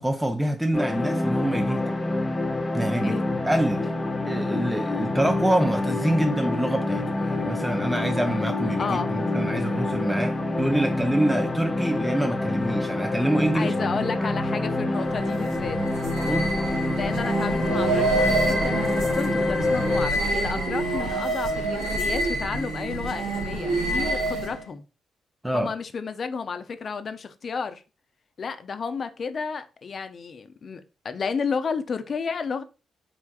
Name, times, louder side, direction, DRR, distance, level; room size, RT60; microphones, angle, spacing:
voice 1, 0.0-2.0 2.7-3.2 3.4-3.9 4.3-14.1 16.2-16.5 25.4-25.7, right 1 dB, 10° right, 0.5 m, -26 dB
sound 1, 0.7-20.1, left 2 dB, 35° left, 0.8 m, -27 dB
voice 2, 8.8-9.1 9.6-9.7 13.5-15.8 16.9-24.8 25.5-27.8 28.4-32.6, left 5 dB, 55° left, 0.4 m, -32 dB
sound 2, 13.2-21.2, right 3 dB, 55° right, 1.2 m, -40 dB
sound 3, 14.9-24.7, right 2 dB, 75° right, 0.6 m, -27 dB
3.7 x 3.4 x 2.3 m
hypercardioid pair, 45°, 0 cm